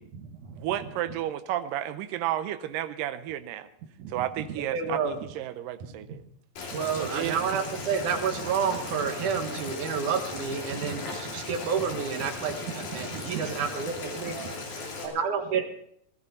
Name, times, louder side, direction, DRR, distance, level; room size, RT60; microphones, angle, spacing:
voice 1, 0.0-0.6 4.0-5.2 6.7-14.4 15.0-15.6, right 6 dB, 70° right, 5 dB, 2.8 m, -30 dB
voice 2, 0.5-3.7 4.1-6.2 7.0-7.4, right 12 dB, 90° right, 10 dB, 2.4 m, -32 dB
Boiling, 6.6-15.1, left 3 dB, 65° left, 4.2 m, -38 dB
voice 3, 13.4-15.6, left 2 dB, 40° left, 1 dB, 4.4 m, -44 dB
18.5 x 14.0 x 4.2 m, 0.68 s
omnidirectional pair, 3.8 m